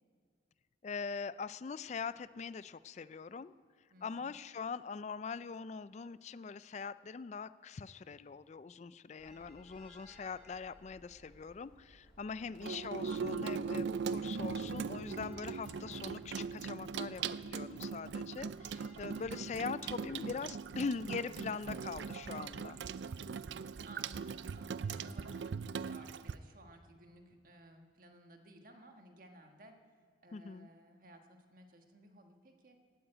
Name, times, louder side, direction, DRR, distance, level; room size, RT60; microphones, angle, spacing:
voice 1, 0.8-3.5 4.0-22.8 30.3-30.7, left 5 dB, 40° left, 16 dB, 0.3 m, -42 dB
voice 2, 3.9-4.5 23.8-29.8 30.2-32.8, right 1 dB, 50° right, 4 dB, 1.4 m, -58 dB
sound 1, 9.2-25.4, equal, 5° left, 4.7 m, -63 dB
Water tap faucet / Sink (filling or washing), 12.5-26.3, right 5 dB, 75° right, 0.4 m, -40 dB
sound 2, 14.3-19.8 20.2-20.4 20.8-20.9, equal, 85° left, 1.4 m, -58 dB
15.5 x 8.9 x 8.9 m, 2.1 s
head